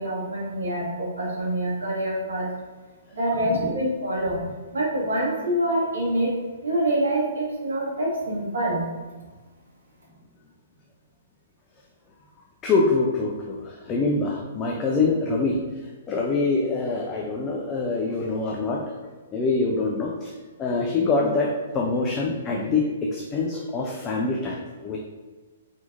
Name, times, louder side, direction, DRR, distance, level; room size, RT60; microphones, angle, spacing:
voice 1, 0.0-2.5 3.2-4.4 4.7-6.3 6.6-8.9, right 1 dB, 65° right, -5 dB, 1.2 m, -25 dB
voice 2, 3.4-3.7 12.6-20.3 20.6-25.0, left 3 dB, 20° left, -1 dB, 0.5 m, -25 dB
4.6 x 3.6 x 2.6 m, 1.3 s
figure-of-eight pair, 120°, 0 cm